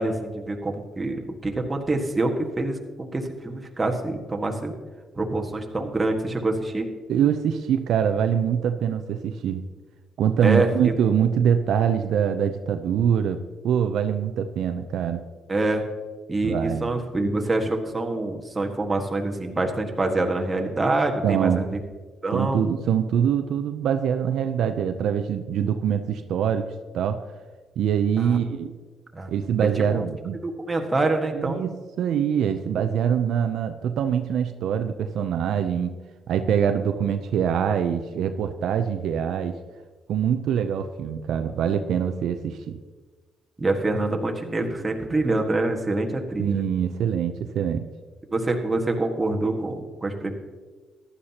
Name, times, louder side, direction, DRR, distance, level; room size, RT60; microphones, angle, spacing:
voice 1, 0.0-4.8 5.2-6.9 10.4-10.9 15.5-15.8 16.3-21.8 22.2-22.7 28.2-28.4 29.1-29.3 29.9-30.0 30.4-31.6 43.6-46.7 48.3-50.3, right 2 dB, 20° right, 2 dB, 1.7 m, -26 dB
voice 2, 7.1-9.6 10.2-15.3 16.4-16.9 21.2-21.7 22.3-26.6 26.9-27.2 27.8-28.7 29.3-30.4 31.3-31.7 32.0-36.0 36.3-39.6 40.1-42.8 46.4-47.9, right 8 dB, 75° right, 7 dB, 0.6 m, -24 dB
15.0 x 11.5 x 2.9 m, 1.3 s
cardioid pair, 90°, 0 cm